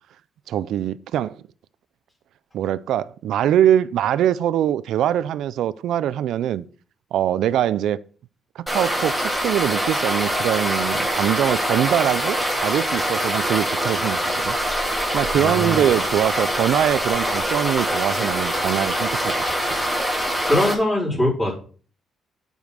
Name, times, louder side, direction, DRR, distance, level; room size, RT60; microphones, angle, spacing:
voice 1, 0.5-1.4 2.5-6.7 7.1-8.0 8.6-14.6 15.1-19.8, right 11 dB, 80° right, 0.4 m, -23 dB
sound 1, 8.7-20.7, equal, ahead, 2.8 m, -24 dB
voice 2, 15.3-15.9 20.4-21.5, left 1 dB, 15° left, 4.2 m, -22 dB
9.1 x 5.4 x 6.3 m
cardioid pair, 125°, 0 cm